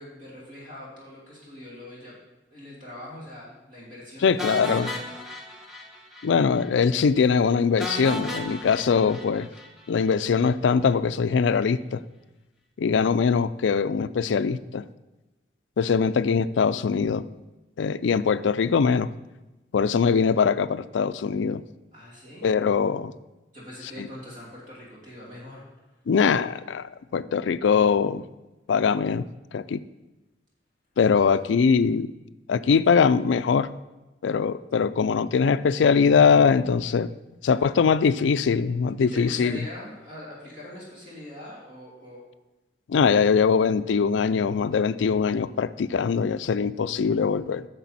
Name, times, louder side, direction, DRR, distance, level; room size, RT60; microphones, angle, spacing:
voice 1, 0.0-2.2 2.5-5.4 21.9-22.5 23.5-25.7 31.0-31.3 39.0-42.2, left 1 dB, 45° right, -6 dB, 3.1 m, -42 dB
voice 2, 4.2-4.9 6.2-9.5 9.9-12.0 12.8-14.8 15.8-17.3 17.8-19.1 19.7-21.6 22.4-23.1 24.0-24.1 26.1-28.2 28.7-29.3 29.5-29.8 31.0-32.1 32.5-33.7 34.2-37.1 37.4-39.6 42.9-47.7, left 6 dB, 85° left, 14 dB, 0.4 m, -22 dB
sound 1, 4.4-6.3 6.6-6.7 7.0-7.1 7.8-10.1, left 1 dB, ahead, 1.0 m, -35 dB
10.5 x 6.7 x 4.1 m, 1.1 s
head